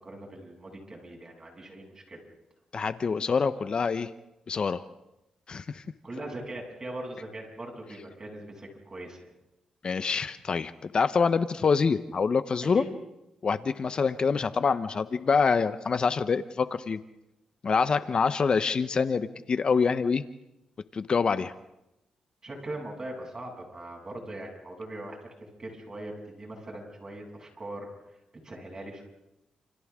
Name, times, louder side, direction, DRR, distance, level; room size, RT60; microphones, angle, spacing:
voice 1, 0.0-2.2 6.0-9.3 12.7-12.9 22.4-25.2 25.6-27.9 28.4-29.0, right 1 dB, 30° right, 0 dB, 7.8 m, -40 dB
voice 2, 2.7-4.1 4.5-4.8 5.5-5.8 9.8-12.8 13.4-17.0 17.6-20.2 20.9-21.5, left 5 dB, 45° left, 12 dB, 0.9 m, -26 dB
29.5 x 28.5 x 3.7 m, 0.92 s
cardioid pair, 90°, 2 cm